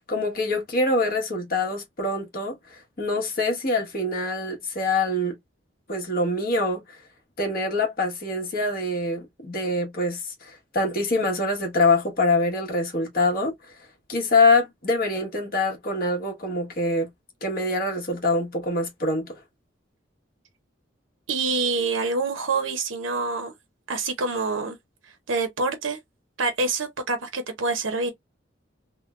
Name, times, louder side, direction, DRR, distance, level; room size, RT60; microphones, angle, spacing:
voice 1, 0.1-5.3 5.9-7.0 7.4-13.7 14.1-17.1 17.4-19.4, left 2 dB, 50° left, 1.4 m, -25 dB
voice 2, 21.3-23.5 23.9-24.8 25.3-26.0 26.4-28.1, right 3 dB, 80° right, 0.8 m, -26 dB
3.6 x 2.2 x 2.4 m
head